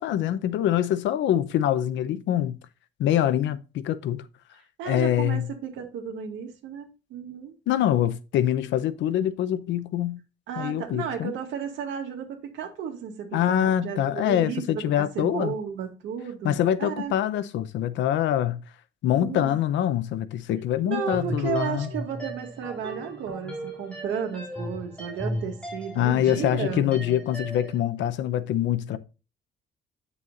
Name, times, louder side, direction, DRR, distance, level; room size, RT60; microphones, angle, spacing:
voice 1, 0.0-2.6 3.0-4.2 4.9-5.5 7.7-10.2 10.6-11.3 13.3-15.5 16.4-18.6 19.0-21.9 26.0-29.0, left 11 dB, 75° left, 0.7 m, -24 dB
voice 2, 4.8-7.5 10.5-17.1 19.1-19.6 20.8-26.8, right 7 dB, 80° right, 2.2 m, -33 dB
sound 1, 20.9-27.8, right 1 dB, 5° left, 3.9 m, -36 dB
8.7 x 6.9 x 2.5 m
cardioid pair, 170°, 19 cm